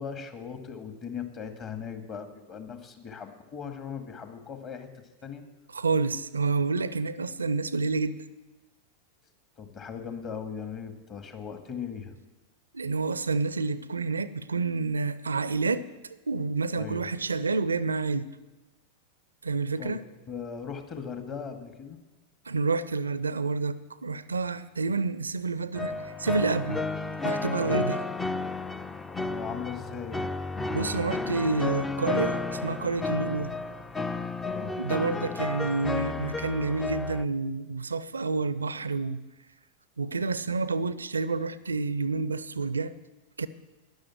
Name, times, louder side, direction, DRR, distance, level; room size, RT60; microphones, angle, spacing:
voice 1, 0.0-4.9 5.2-5.4 9.6-12.1 16.8-17.1 19.8-20.0 20.3-22.0 27.6-27.8 29.2-30.4 34.5-34.8, left 6 dB, 30° left, 7 dB, 1.9 m, -38 dB
voice 2, 5.7-8.2 12.7-15.9 16.3-18.3 19.4-20.0 22.5-26.8 27.2-28.1 30.7-33.5 34.8-39.2 40.0-42.9 43.4-43.5, right 4 dB, 75° right, 16 dB, 0.5 m, -29 dB
sound 1, 25.8-37.3, left 3 dB, 10° left, 0.6 m, -32 dB
12.5 x 10.5 x 7.6 m, 1.1 s
figure-of-eight pair, 90°, 0 cm